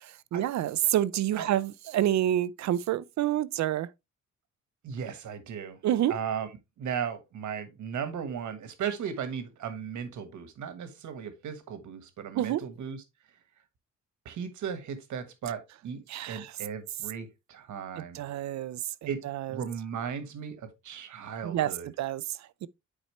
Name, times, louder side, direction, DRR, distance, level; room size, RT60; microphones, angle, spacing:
voice 1, 0.0-3.9 5.8-6.1 12.4-12.6 16.1-16.5 18.0-18.8 19.2-19.6 21.4-22.7, right 12 dB, 70° right, 0.5 m, -28 dB
voice 2, 4.8-5.8 6.1-6.5 6.8-13.0 14.2-18.2 19.1-19.2 19.5-21.9, right 7 dB, 85° right, 1.4 m, -36 dB
9.0 x 4.2 x 3.0 m
wide cardioid pair, 155°, 29 cm